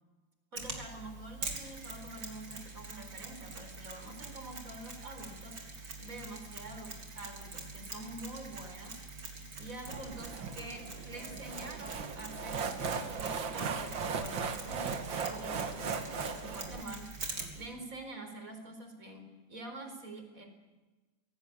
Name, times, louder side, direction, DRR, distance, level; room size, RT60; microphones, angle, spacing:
voice 1, 0.5-9.0 9.6-17.2 17.5-20.5, right 2 dB, 45° right, 6 dB, 4.7 m, -46 dB
Mechanisms, 0.6-17.7, right 3 dB, 65° right, 4.3 m, -45 dB
sound 1, 9.9-16.8, right 5 dB, 85° right, 2.4 m, -37 dB
26.0 x 18.5 x 8.7 m, 1.2 s
omnidirectional pair, 2.0 m